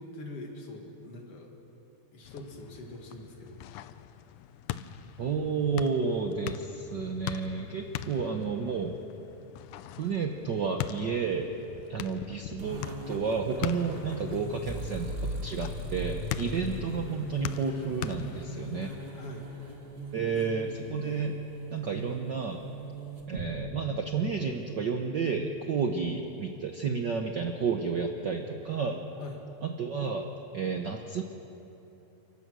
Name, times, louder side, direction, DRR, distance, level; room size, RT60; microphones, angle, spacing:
voice 1, 0.0-1.5 2.1-3.6 19.1-19.5 20.3-20.4 29.2-29.4, left 2 dB, 55° left, 1 dB, 3.0 m, -43 dB
Basketball practice, 2.2-19.0, left 12 dB, 85° left, 2.1 m, -41 dB
voice 2, 5.2-8.9 10.0-11.5 11.9-18.9 20.1-21.4 21.7-22.6 23.3-29.0 29.6-30.2 30.5-31.2, right 5 dB, 90° right, 4 dB, 0.9 m, -31 dB
sound 1, 12.6-23.5, right 1 dB, 25° right, 1.8 m, -39 dB
29.5 x 15.0 x 6.2 m, 3.0 s
omnidirectional pair, 3.4 m